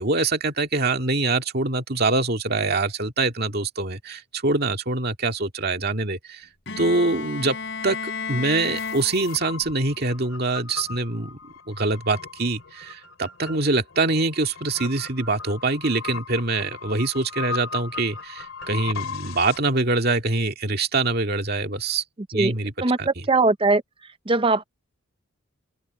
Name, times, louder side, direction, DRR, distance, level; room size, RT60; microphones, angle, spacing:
voice 1, 0.0-6.4 6.8-11.4 11.7-22.0 22.3-22.7 23.0-23.1, right 3 dB, 50° right, 2.1 m, -24 dB
Bowed string instrument, 6.7-9.8, left 5 dB, 60° left, 4.2 m, -33 dB
sound 1, 8.8-19.6, left 5 dB, 75° left, 2.8 m, -38 dB
voice 2, 22.8-23.8 24.3-24.6, right 3 dB, 25° right, 0.7 m, -20 dB
head